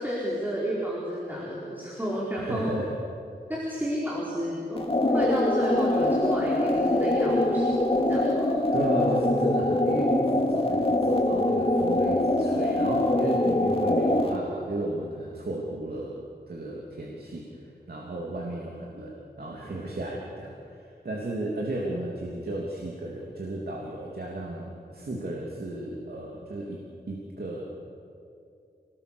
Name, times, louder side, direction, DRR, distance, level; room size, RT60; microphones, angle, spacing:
voice 1, 0.0-2.7 3.5-7.8 8.1-8.5, equal, 10° right, -6 dB, 4.8 m, -31 dB
voice 2, 2.3-2.9 8.7-16.2 16.5-26.8 27.1-27.7, right 1 dB, 65° right, -2 dB, 3.1 m, -34 dB
sound 1, 4.8-14.4, left 1 dB, 35° left, 2.5 m, -24 dB
29.0 x 20.0 x 7.0 m, 2.5 s
wide cardioid pair, 100°, 17 cm